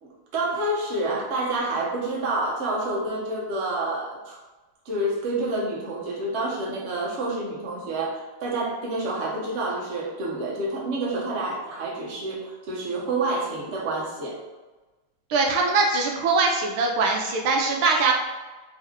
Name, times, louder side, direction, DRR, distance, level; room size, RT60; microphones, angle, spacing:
voice 1, 0.0-4.4 4.8-14.4, right 2 dB, 45° right, -4 dB, 0.9 m, -28 dB
voice 2, 15.3-18.1, right 3 dB, 75° right, 1 dB, 1.4 m, -22 dB
3.6 x 3.4 x 3.4 m, 1.2 s
omnidirectional pair, 2.4 m